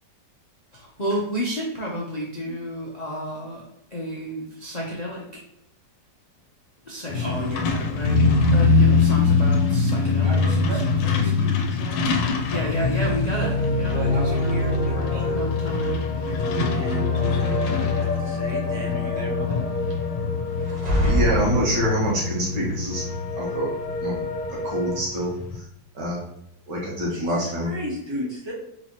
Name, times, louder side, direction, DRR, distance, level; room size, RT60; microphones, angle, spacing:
voice 1, 0.7-3.6 3.9-5.4 6.9-7.2 7.9-10.6 12.5-14.6 14.8-16.0, equal, 65° left, -3 dB, 0.4 m, -31 dB
voice 2, 3.3-3.6 7.2-8.4 10.2-12.7 13.4-13.5 13.9-15.4 16.2-19.6 27.1-28.5, equal, 20° right, -3 dB, 0.9 m, -36 dB
Truck, 7.1-25.6, left 4 dB, 85° left, 1.3 m, -24 dB
sound 1, 13.4-25.0, left 1 dB, 35° left, 0.8 m, -31 dB
sound 2, 20.6-22.3, equal, 35° right, 0.6 m, -25 dB
voice 3, 21.0-23.1 23.3-23.7 24.0-24.2 24.6-25.7 26.0-26.2 26.7-27.7, equal, 75° right, -5 dB, 2.0 m, -26 dB
4.2 x 4.2 x 2.9 m, 0.78 s
omnidirectional pair, 2.0 m